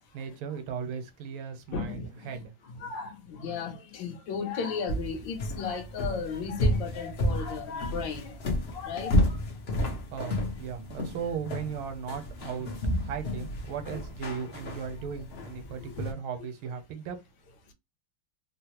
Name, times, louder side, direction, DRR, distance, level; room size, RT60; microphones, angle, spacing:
voice 1, 0.1-2.5 10.1-12.7 13.0-17.2, right 7 dB, 90° right, 1.6 m, -37 dB
voice 2, 1.7-2.1 2.8-8.4 8.7-9.2 15.8-15.9, left 5 dB, 70° left, 1.4 m, -35 dB
sound 1, 4.9-16.1, left 1 dB, 90° left, 0.5 m, -31 dB
3.7 x 2.0 x 2.9 m
omnidirectional pair, 2.2 m